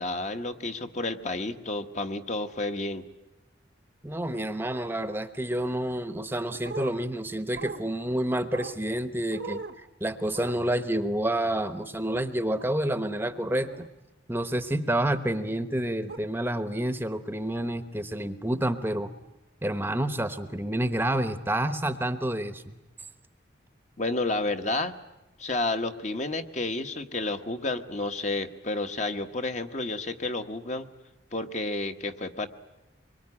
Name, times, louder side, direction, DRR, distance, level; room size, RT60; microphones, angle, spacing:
voice 1, 0.0-3.0 24.0-24.9 25.4-30.9 31.3-32.5, left 2 dB, 35° left, 7 dB, 1.2 m, -31 dB
voice 2, 4.0-13.9 14.3-19.1 19.6-22.8, right 1 dB, 10° right, 10 dB, 0.9 m, -29 dB
sound 1, 6.6-6.9 7.6-7.8 8.5-8.8 9.3-9.8 10.3-10.6 12.6-12.7 13.6-13.9 15.1-15.3 16.1-16.2, right 4 dB, 60° right, 1.1 m, -39 dB
25.0 x 23.5 x 9.7 m, 0.99 s
head